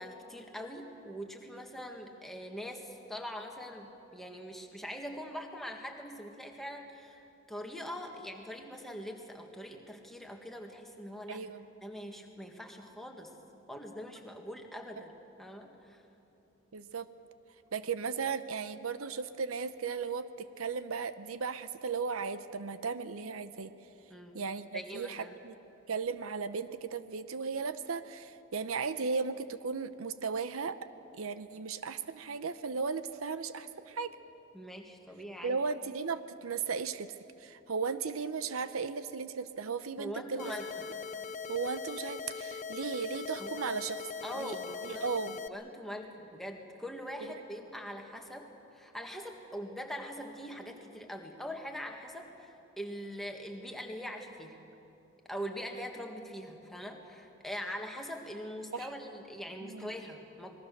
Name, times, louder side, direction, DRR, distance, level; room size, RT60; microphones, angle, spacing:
voice 1, 0.0-7.2 7.5-11.4 11.8-13.3 13.7-15.1 15.4-16.0 24.1-24.3 24.7-25.3 34.5-35.6 40.0-40.7 43.4-43.6 44.2-45.0 45.4-54.6 55.3-60.5, equal, ahead, 2 dB, 1.8 m, -42 dB
voice 2, 11.3-11.6 16.7-17.1 17.7-23.7 24.3-25.5 25.9-30.8 31.1-34.2 35.4-40.5 41.5-44.0 44.3-44.6 44.8-45.4 58.7-58.9 59.6-59.9, right 5 dB, 75° right, 12 dB, 0.7 m, -36 dB
sound 1, 40.4-45.5, left 5 dB, 35° left, 0.6 m, -41 dB
27.0 x 20.5 x 6.6 m, 2.8 s
head